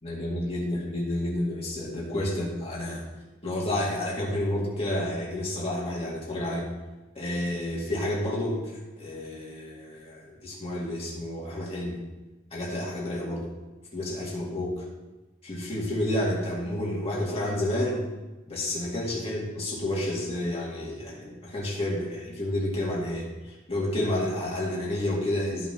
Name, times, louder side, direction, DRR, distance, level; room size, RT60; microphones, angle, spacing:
voice 1, 0.0-3.1 3.4-6.7 7.2-12.0 12.5-13.5 13.9-14.9 15.4-18.0 18.5-25.7, left 1 dB, 30° left, -4 dB, 2.2 m, -30 dB
13.5 x 5.7 x 2.9 m, 1.1 s
head